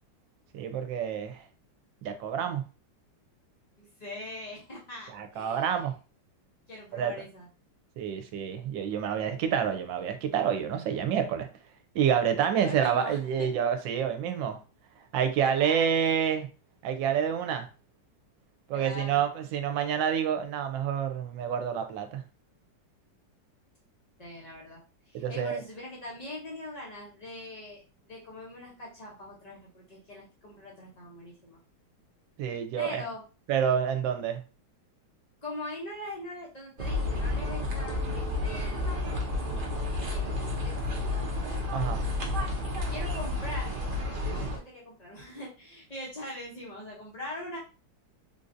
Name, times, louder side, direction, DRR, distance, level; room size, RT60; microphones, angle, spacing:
voice 1, 0.5-1.4 2.0-2.6 5.1-5.9 6.9-7.1 8.0-11.5 11.9-14.6 15.1-16.5 16.8-17.7 18.7-22.2 25.1-25.6 32.4-33.0 33.5-34.4 41.7-42.0, right 8 dB, 85° right, 7 dB, 1.3 m, -28 dB
voice 2, 3.8-5.8 6.7-7.5 12.6-13.5 15.5-15.9 18.7-19.3 24.2-24.8 25.1-31.6 32.8-33.2 35.4-39.3 40.1-41.3 42.9-47.6, left 1 dB, 75° left, -4 dB, 0.3 m, -42 dB
sound 1, 36.8-44.6, left 2 dB, 65° right, 0.5 m, -31 dB
3.7 x 2.6 x 2.5 m, 0.33 s
omnidirectional pair, 2.0 m